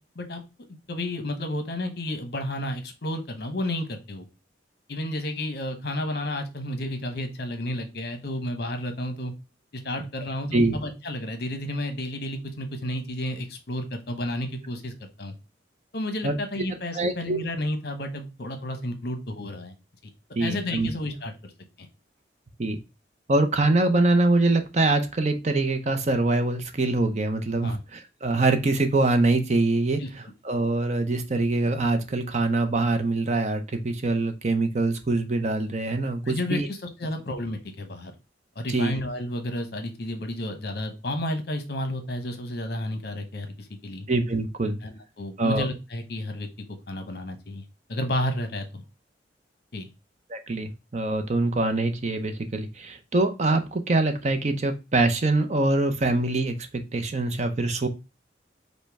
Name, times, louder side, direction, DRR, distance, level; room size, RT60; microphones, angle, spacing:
voice 1, 0.7-4.2 4.9-9.3 9.7-15.3 15.9-19.7 20.4-21.5 21.8-21.9 27.6-27.8 30.0-30.1 36.2-38.1 38.6-44.1 44.8-46.5 46.9-47.6 47.9-48.8 49.7-49.9, left 1 dB, 55° left, 6 dB, 0.9 m, -31 dB
voice 2, 16.9-17.4 20.4-20.9 22.6-22.8 23.3-36.7 38.7-39.0 44.1-44.8 45.4-45.7 50.3-57.9, right 2 dB, 40° right, 8 dB, 0.6 m, -24 dB
5.2 x 2.2 x 4.6 m, 0.27 s
head